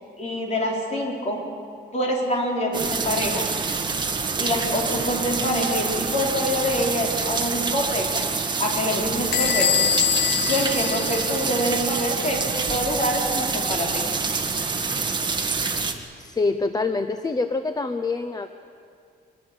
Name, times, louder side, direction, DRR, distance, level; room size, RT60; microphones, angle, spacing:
voice 1, 0.2-1.4 1.9-3.5 4.4-8.1 8.6-9.7 10.4-14.0, equal, 35° left, -1 dB, 4.3 m, -26 dB
sound 1, 2.7-15.9, right 4 dB, 25° right, 1.5 m, -26 dB
Bell / Door, 9.3-11.8, left 9 dB, 60° left, 0.7 m, -24 dB
voice 2, 16.2-18.5, left 3 dB, 20° left, 9 dB, 0.7 m, -25 dB
24.0 x 20.5 x 7.9 m, 2.4 s
wide cardioid pair, 160°, 19 cm